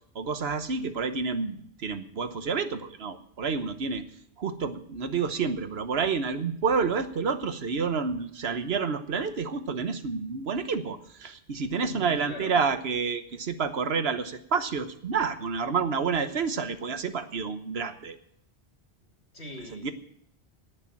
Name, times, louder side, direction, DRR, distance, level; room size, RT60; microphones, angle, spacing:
voice 1, 0.1-4.0 4.4-18.2 19.7-19.9, right 5 dB, 70° right, 9 dB, 1.3 m, -29 dB
voice 2, 11.8-12.6 19.3-19.9, left 1 dB, 80° left, 0 dB, 3.0 m, -41 dB
18.5 x 6.8 x 7.2 m, 0.69 s
omnidirectional pair, 1.1 m